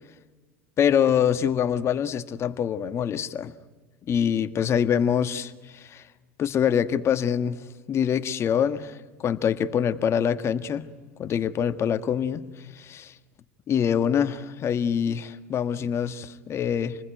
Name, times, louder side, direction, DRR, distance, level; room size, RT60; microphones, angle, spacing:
voice 1, 0.8-3.5 4.1-6.0 6.4-7.6 7.9-10.8 11.2-12.4 12.7-13.1 13.7-17.0, left 8 dB, 40° left, 1.5 m, -25 dB
28.0 x 20.5 x 9.1 m
hypercardioid pair, 90°, 7 cm